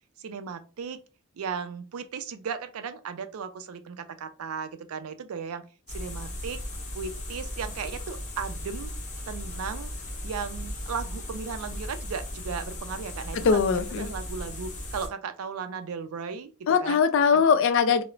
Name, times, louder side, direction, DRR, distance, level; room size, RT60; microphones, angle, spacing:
voice 1, 0.2-1.0 1.4-6.6 6.9-8.9 9.3-9.9 10.2-16.5 16.8-17.0 17.3-17.4, right 6 dB, 80° right, 0.4 m, -36 dB
sound 1, 5.9-15.1, left 1 dB, 35° left, 0.7 m, -37 dB
voice 2, 13.3-14.1 16.7-18.0, left 6 dB, 60° left, 0.3 m, -21 dB
2.4 x 2.0 x 3.0 m
head